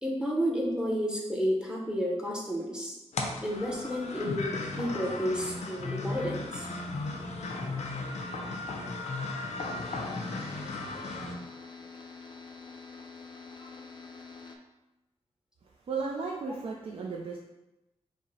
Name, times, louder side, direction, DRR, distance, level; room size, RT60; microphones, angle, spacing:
voice 1, 0.0-3.0 3.4-6.7, equal, 5° right, -2 dB, 0.7 m, -31 dB
sound 1, 3.1-11.3, left 3 dB, 90° left, 0.5 m, -36 dB
sound 2, 9.6-14.6, left 4 dB, 45° left, 0.5 m, -47 dB
voice 2, 15.8-17.4, right 4 dB, 55° right, -1 dB, 0.4 m, -34 dB
5.2 x 2.0 x 4.0 m, 0.99 s
wide cardioid pair, 160°, 11 cm